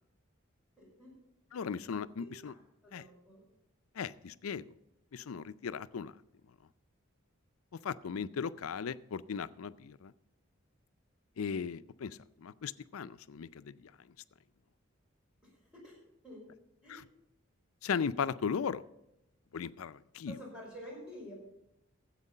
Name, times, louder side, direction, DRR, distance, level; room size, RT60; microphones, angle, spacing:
voice 1, 0.8-1.1 2.2-3.4 15.8-16.0 16.2-16.4 16.8-17.0 20.3-21.3, equal, 5° right, -5 dB, 5.5 m, -49 dB
voice 2, 1.5-2.5 2.9-3.1 4.0-4.7 5.1-6.1 7.8-10.1 11.4-13.9 16.9-17.0 17.8-18.8 19.5-20.4, left 6 dB, 90° left, 14 dB, 0.5 m, -37 dB
13.5 x 8.1 x 5.5 m, 0.87 s
head